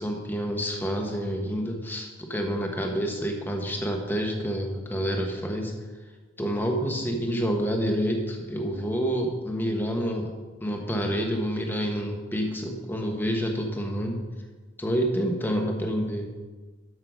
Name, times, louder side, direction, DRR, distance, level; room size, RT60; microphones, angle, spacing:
voice 1, 0.0-5.8 6.4-10.3 10.6-14.2 14.8-16.3, equal, 10° left, 2 dB, 1.1 m, -28 dB
7.8 x 6.6 x 6.1 m, 1.3 s
head